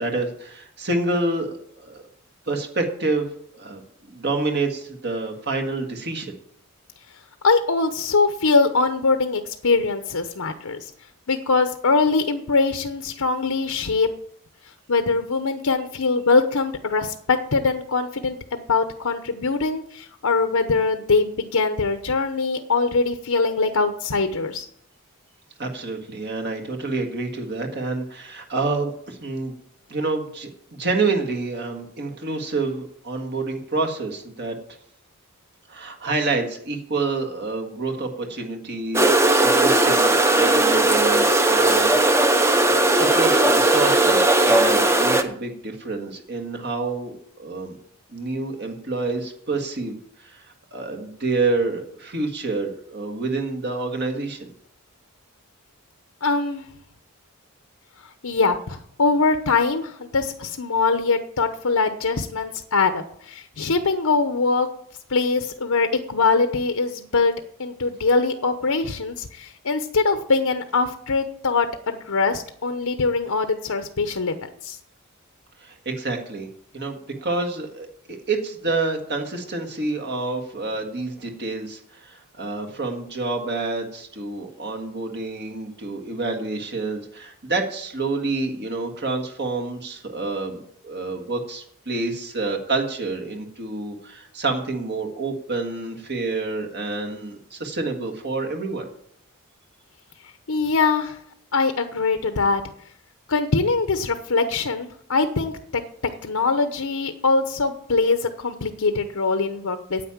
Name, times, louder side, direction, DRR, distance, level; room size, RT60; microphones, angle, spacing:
voice 1, 0.0-2.0 2.5-3.3 3.5-3.8 4.1-6.3 25.6-29.5 29.9-34.6 35.7-47.8 48.1-50.0 50.2-50.4 50.7-54.5 75.6-76.5 76.7-98.8, right 3 dB, 50° right, 3 dB, 1.8 m, -28 dB
voice 2, 7.4-10.9 11.3-14.1 14.9-24.6 56.2-56.6 58.2-64.7 65.1-67.3 67.6-74.8 100.5-101.2 101.5-102.6 103.3-105.5 106.2-110.0, left 4 dB, 75° left, 7 dB, 0.9 m, -22 dB
sound 1, 38.9-45.2, right 2 dB, 10° right, 0.8 m, -17 dB
9.6 x 8.8 x 7.2 m, 0.66 s
head